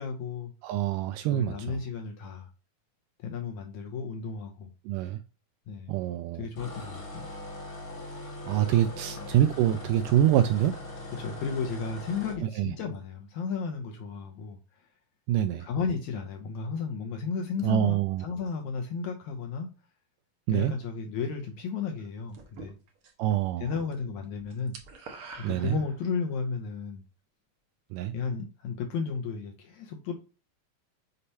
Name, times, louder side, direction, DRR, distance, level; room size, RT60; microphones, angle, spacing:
voice 1, 0.0-0.5 1.3-2.5 3.2-4.7 5.7-6.0 6.4-7.3 9.1-9.3 11.1-14.9 15.6-19.7 20.5-22.8 23.6-24.7 25.4-27.0 28.1-30.1, left 5 dB, 75° left, 1.8 m, -34 dB
voice 2, 0.6-1.8 4.9-5.2 5.9-6.4 8.5-10.7 12.4-12.7 15.3-15.6 17.6-18.2 20.5-20.7 23.2-23.7 25.4-25.8 27.9-28.1, right 11 dB, 80° right, 1.9 m, -25 dB
sound 1, 6.6-12.4, left 2 dB, 55° left, 1.0 m, -41 dB
sound 2, 22.3-23.3 23.6-24.0 24.2-26.3, right 4 dB, 65° right, 1.3 m, -46 dB
6.7 x 2.9 x 5.4 m
omnidirectional pair, 4.1 m